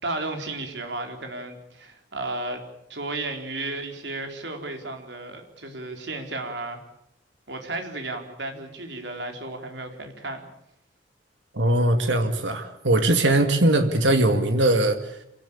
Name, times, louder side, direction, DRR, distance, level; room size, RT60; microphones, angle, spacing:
voice 1, 0.0-2.6 2.9-6.8 7.5-10.4, right 2 dB, 70° right, 4 dB, 4.1 m, -33 dB
voice 2, 11.5-15.2, right 1 dB, 90° right, 6 dB, 2.3 m, -21 dB
27.0 x 18.0 x 8.7 m, 0.77 s
head